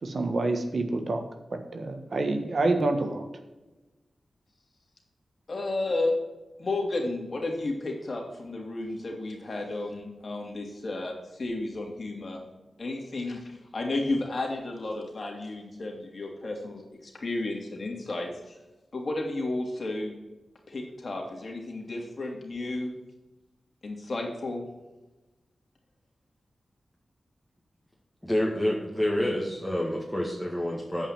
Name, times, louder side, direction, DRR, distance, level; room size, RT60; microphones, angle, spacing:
voice 1, 0.0-1.2 1.5-3.2, right 2 dB, 60° right, 6 dB, 1.4 m, -27 dB
voice 2, 5.5-6.2 6.6-12.4 12.8-18.6 18.9-20.1 20.7-22.9 23.8-24.6, left 2 dB, 50° left, 0 dB, 2.9 m, -32 dB
voice 3, 28.2-31.1, left 1 dB, ahead, -3 dB, 2.0 m, -28 dB
8.6 x 5.4 x 7.4 m, 1.1 s
cardioid pair, 70°, 0 cm